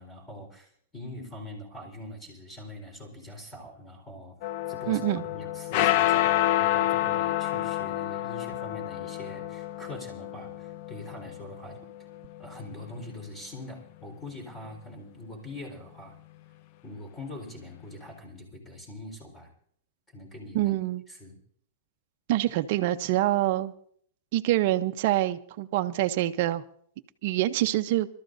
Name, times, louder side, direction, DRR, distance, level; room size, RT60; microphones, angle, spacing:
voice 1, 0.0-4.4 4.7-5.0 5.3-11.8 12.4-16.2 16.8-19.5 20.1-20.7 21.1-21.4, left 1 dB, 15° left, 4 dB, 4.3 m, -43 dB
sound 1, 4.4-13.0, left 14 dB, 50° left, 0.6 m, -29 dB
voice 2, 4.9-5.2 20.5-21.0 22.3-23.7 24.3-26.6 27.2-28.1, right 15 dB, 55° right, 8 dB, 0.8 m, -25 dB
28.0 x 13.0 x 2.6 m, 0.63 s
hypercardioid pair, 140°, 0 cm